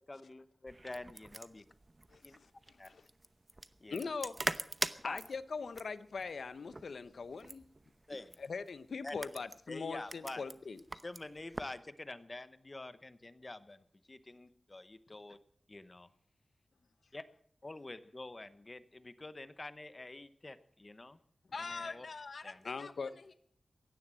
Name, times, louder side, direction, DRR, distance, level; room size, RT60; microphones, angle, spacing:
voice 1, 0.1-1.6 2.2-2.3 2.8-2.9 3.8-4.1 5.0-5.2 8.1-8.4 9.0-9.2 9.7-10.4 11.0-15.4 15.7-16.1 17.1-17.2 17.6-21.2 21.7-22.1 22.4-22.6, left 2 dB, 35° left, 13 dB, 0.8 m, -47 dB
sound 1, 0.7-11.8, right 2 dB, 30° right, 0.8 m, -44 dB
voice 2, 2.1-2.5 2.8-3.0 3.9-4.4 5.0-7.6 8.4-10.8 22.6-23.1, left 4 dB, 85° left, 14 dB, 0.8 m, -41 dB
voice 3, 21.4-23.3, left 4 dB, 70° left, 11 dB, 1.1 m, -44 dB
16.0 x 11.0 x 7.5 m, 0.63 s
wide cardioid pair, 95°, 0 cm